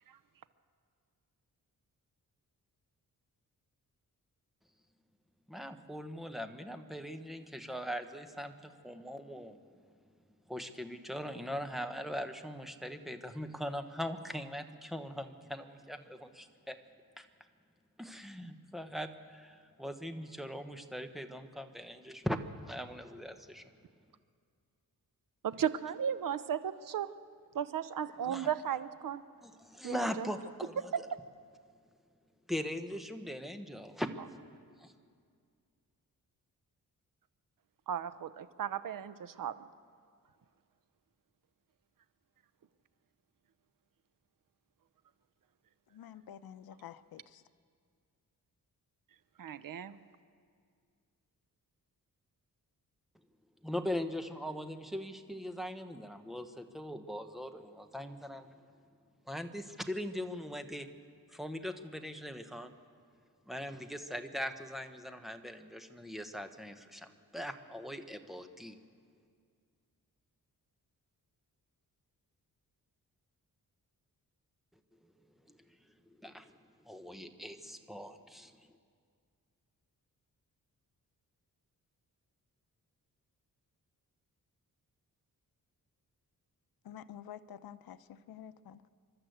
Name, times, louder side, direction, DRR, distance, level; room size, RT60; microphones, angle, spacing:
voice 1, 5.5-9.6 10.5-16.8 17.2-17.3 18.0-23.6 25.9-26.0 28.2-28.6 29.4-31.1 32.5-34.1 34.8-34.9 53.6-58.5 59.3-60.9 61.3-62.7 63.5-67.1 67.3-68.8 75.5-75.6 76.2-76.6 76.8-78.5, equal, ahead, 7 dB, 1.1 m, -40 dB
voice 2, 25.4-27.1 27.5-29.2 29.8-30.3 30.9-31.2 37.9-39.6 49.4-50.0, right 8 dB, 65° right, 14 dB, 0.8 m, -35 dB
voice 3, 45.9-47.4 86.8-88.9, left 10 dB, 90° left, 13 dB, 0.7 m, -49 dB
27.5 x 12.0 x 8.0 m, 2.2 s
wide cardioid pair, 125°, 35 cm